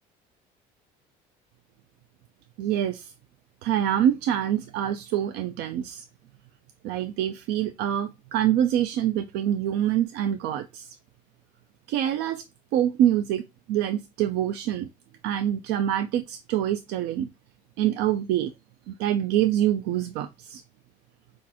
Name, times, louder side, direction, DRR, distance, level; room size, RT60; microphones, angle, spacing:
voice 1, 2.6-3.1 3.6-6.0 6.8-11.0 11.9-12.4 12.7-14.9 15.2-17.3 17.8-18.5 18.9-20.6, right 11 dB, 75° right, 0.4 m, -25 dB
6.0 x 2.6 x 2.8 m
cardioid pair, 150°, 17 cm